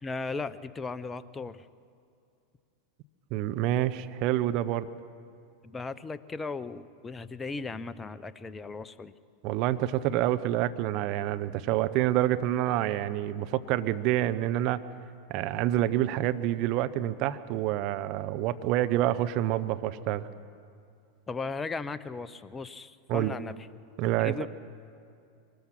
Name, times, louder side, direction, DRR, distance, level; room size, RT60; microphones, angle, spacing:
voice 1, 0.0-1.6 5.6-9.1 21.3-23.5 24.2-24.5, left 4 dB, 20° left, 14 dB, 0.8 m, -36 dB
voice 2, 3.3-4.9 9.4-14.8 15.3-20.3 23.1-23.3 24.0-24.4, right 13 dB, 50° right, 12 dB, 0.9 m, -27 dB
24.5 x 20.0 x 6.0 m, 2.4 s
hypercardioid pair, 90°, 0 cm